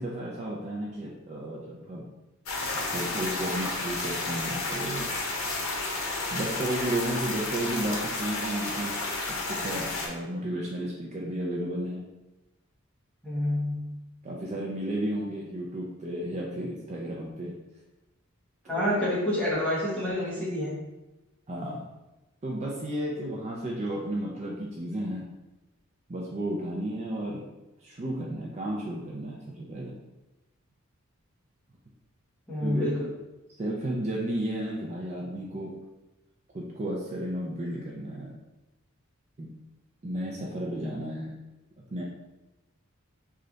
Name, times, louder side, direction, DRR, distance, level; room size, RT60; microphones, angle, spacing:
voice 1, 0.0-2.0 2.9-5.1 6.3-9.0 9.3-12.0 14.2-17.5 18.6-19.0 21.5-21.8 22.4-25.3 26.1-27.4 27.8-30.0 32.6-32.9 33.6-35.7 36.5-38.3 39.4-39.5 40.0-41.3 41.9-42.0, right 1 dB, 30° right, -3 dB, 0.4 m, -33 dB
sound 1, 2.4-10.1, left 2 dB, 80° left, 0.7 m, -32 dB
voice 2, 13.2-13.8 18.7-20.7 32.5-33.1, left 1 dB, 5° left, -8 dB, 1.1 m, -28 dB
3.2 x 2.4 x 3.8 m, 1.0 s
head